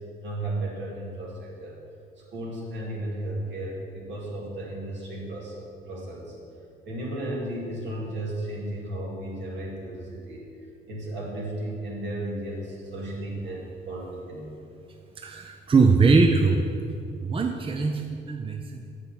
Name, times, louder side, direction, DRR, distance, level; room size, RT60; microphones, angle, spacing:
voice 1, 0.2-1.8 2.3-6.3 6.9-10.5 10.9-14.5, right 1 dB, 65° right, -3 dB, 2.5 m, -34 dB
voice 2, 15.2-16.6 17.2-18.9, right 4 dB, 25° right, 4 dB, 0.6 m, -21 dB
6.9 x 6.5 x 7.1 m, 2.5 s
cardioid pair, 90°, 20 cm